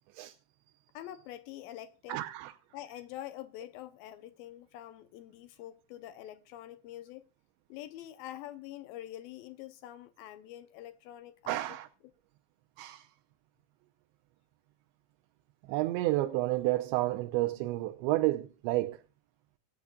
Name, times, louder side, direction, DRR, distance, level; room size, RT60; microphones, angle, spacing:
voice 1, 0.9-2.2 2.7-7.3 7.7-11.8, left 13 dB, 85° left, 2.1 m, -46 dB
voice 2, 2.1-2.5 11.5-11.9 12.8-13.1 15.7-19.0, right 17 dB, 90° right, 3.0 m, -30 dB
25.0 x 8.4 x 2.3 m
omnidirectional pair, 5.0 m